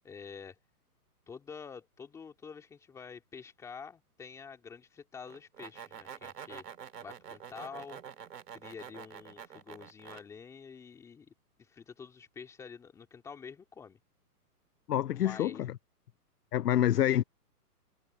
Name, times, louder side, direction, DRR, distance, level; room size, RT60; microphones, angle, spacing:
voice 1, 0.0-0.6 1.3-6.6 7.0-8.0 8.5-14.0 15.1-15.6, left 6 dB, 5° left, 2.4 m, -48 dB
sound 1, 5.3-10.2, right 8 dB, 90° right, 2.7 m, -47 dB
voice 2, 14.9-15.7 16.5-17.2, left 12 dB, 85° left, 0.7 m, -27 dB
hypercardioid pair, 170°, 47 cm